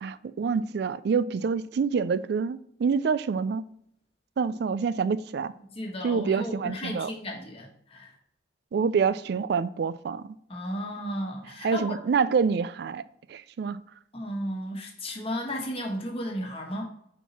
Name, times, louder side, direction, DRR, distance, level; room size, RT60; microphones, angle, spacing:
voice 1, 0.0-3.6 4.4-5.5 6.0-7.1 8.7-10.4 11.6-13.0 13.3-13.8, right 5 dB, 60° right, 0.3 m, -27 dB
voice 2, 5.7-8.1 10.5-12.0 14.1-16.8, equal, 35° left, 1.4 m, -34 dB
5.5 x 4.5 x 4.2 m
head